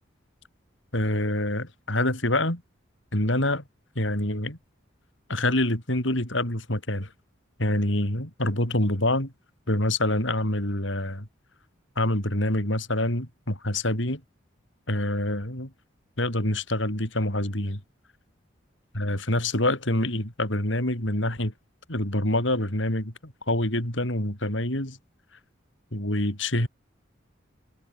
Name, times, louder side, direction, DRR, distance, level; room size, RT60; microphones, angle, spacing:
voice 1, 0.9-2.6 3.1-3.6 3.9-4.6 5.3-7.1 7.6-9.3 9.7-11.3 12.0-14.2 14.9-15.7 16.2-17.8 18.9-21.5 21.9-25.0 25.9-26.7, left 1 dB, 75° left, 6.5 m, -26 dB
head